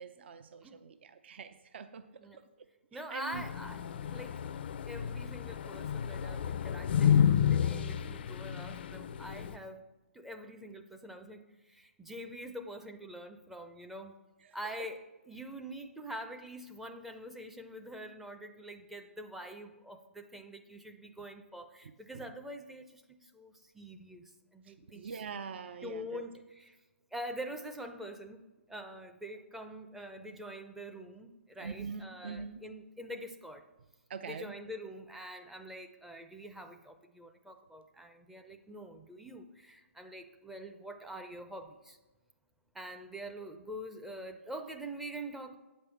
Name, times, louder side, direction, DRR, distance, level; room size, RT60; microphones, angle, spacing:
voice 1, 0.0-2.0 2.3-2.7 2.9-3.4 14.4-14.6 22.1-22.3 24.7-26.2 31.6-32.6 34.1-34.6, right 5 dB, 55° right, 10 dB, 0.5 m, -44 dB
voice 2, 2.9-4.4 4.9-9.8 10.1-14.1 14.5-25.2 25.8-26.8 27.1-33.7 34.2-42.0 42.7-45.6, equal, 5° right, 5 dB, 0.5 m, -45 dB
sound 1, 3.3-9.5, left 8 dB, 50° left, 0.4 m, -30 dB
8.4 x 5.4 x 7.0 m, 1.1 s
hypercardioid pair, 145°, 7 cm